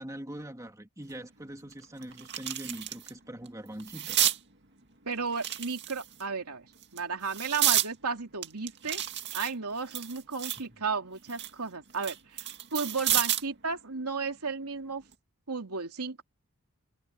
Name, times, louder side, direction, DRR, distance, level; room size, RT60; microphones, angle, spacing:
voice 1, 0.0-4.3, right 1 dB, 15° right, 2.5 m, -42 dB
sound 1, 1.1-1.2 1.7-3.1 3.5-4.4 5.3-6.2 6.8-7.9 8.4-10.7 11.1-13.5 14.9-15.1, right 12 dB, 50° right, 2.1 m, -31 dB
voice 2, 5.0-6.7 6.9-9.0 9.3-12.5 12.7-15.0 15.5-16.2, right 5 dB, 90° right, 2.9 m, -34 dB
head